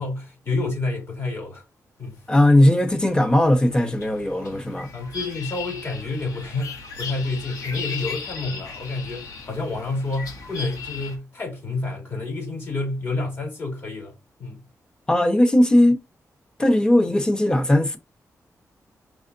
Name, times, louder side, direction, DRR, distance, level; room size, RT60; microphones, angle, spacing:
voice 1, 0.0-1.6 2.0-2.2 4.9-14.6, left 2 dB, 45° left, 2.5 m, -29 dB
sound 1, 2.3-11.2, left 5 dB, 90° left, 1.2 m, -37 dB
voice 2, 2.3-4.9 15.1-16.0 16.6-18.0, left 1 dB, 15° left, 0.8 m, -18 dB
4.8 x 3.6 x 2.6 m
wide cardioid pair, 140°, 6 cm